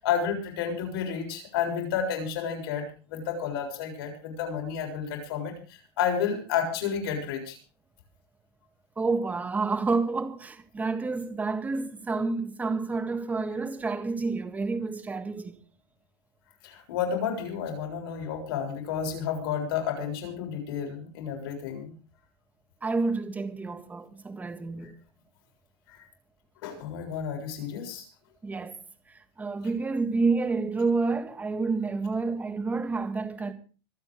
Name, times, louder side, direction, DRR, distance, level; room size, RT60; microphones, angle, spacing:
voice 1, 0.0-7.6 16.6-21.9 24.8-24.9 25.9-26.0 26.6-28.1, left 7 dB, 75° left, 7.2 m, -31 dB
voice 2, 9.0-15.6 22.8-25.0 28.4-28.8 29.1-33.5, right 3 dB, 10° right, 1.6 m, -29 dB
26.0 x 8.9 x 4.9 m
supercardioid pair, 145°, 13 cm